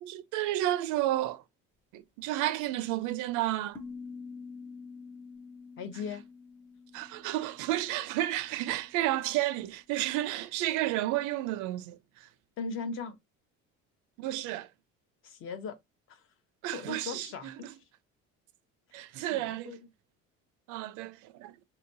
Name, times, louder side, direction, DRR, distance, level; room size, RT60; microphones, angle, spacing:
voice 1, 0.0-1.4 1.9-3.8 6.9-12.3 14.2-14.7 16.6-17.6 18.9-19.8 20.7-21.6, right 14 dB, 75° right, 0.5 m, -31 dB
sound 1, 3.8-8.6, left 4 dB, 5° left, 0.6 m, -47 dB
voice 2, 5.8-6.2 12.6-13.2 15.2-15.8 16.1-16.2 16.7-17.7 19.3-19.8, left 5 dB, 45° left, 0.7 m, -38 dB
4.3 x 2.8 x 2.5 m
cardioid pair, 175°, 30 cm